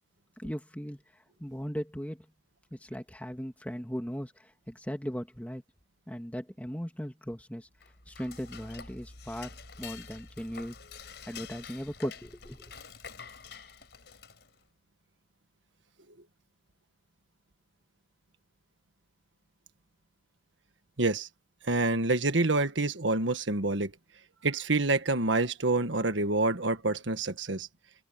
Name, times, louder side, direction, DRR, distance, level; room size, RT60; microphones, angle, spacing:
voice 1, 0.4-2.3 2.7-5.6 6.1-7.7 8.1-10.8 11.3-12.7, equal, 10° left, 2.6 m, -38 dB
Dishes pots and pans / Cutlery silverware, 7.7-14.6, left 5 dB, 65° left, 4.9 m, -47 dB
voice 2, 21.0-21.3 21.6-23.9 24.4-27.7, right 2 dB, 85° right, 1.6 m, -27 dB
open air
head